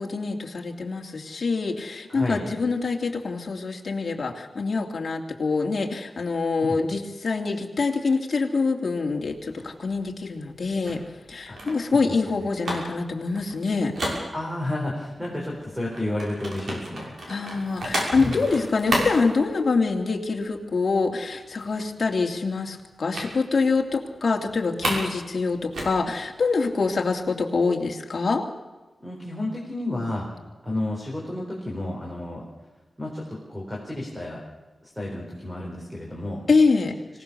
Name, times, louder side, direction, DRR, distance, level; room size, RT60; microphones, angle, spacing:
voice 1, 0.0-11.0 11.3-13.9 17.3-28.4 36.5-36.9, left 4 dB, 45° left, 1 dB, 2.7 m, -25 dB
voice 2, 2.1-2.5 6.6-6.8 11.5-11.6 12.1-12.2 14.3-17.1 18.2-18.4 29.0-30.3 30.6-32.4 33.0-34.4 34.8-36.4, left 1 dB, 5° right, -3 dB, 4.3 m, -31 dB
sound 1, 9.1-14.9 15.2-20.1 20.4-20.7 21.0-21.1 21.4-22.1 23.1-23.3 23.7-23.8 24.2-25.1 25.4-27.1, right 1 dB, 65° right, 6.2 m, -32 dB
25.5 x 17.5 x 7.0 m, 1.2 s
wide cardioid pair, 180°, 0 cm